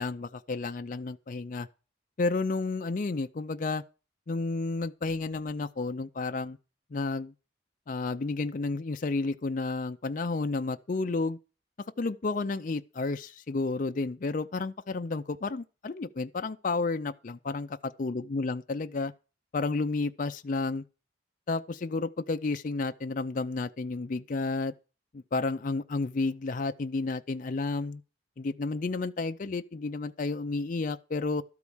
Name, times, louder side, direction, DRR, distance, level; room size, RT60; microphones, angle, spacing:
voice 1, 0.0-1.7 2.2-3.8 4.3-6.6 6.9-7.3 7.9-11.4 12.0-19.1 19.5-20.8 21.5-24.7 25.1-28.0 28.4-31.4, left 3 dB, 45° left, 0.5 m, -31 dB
12.5 x 4.8 x 7.1 m
head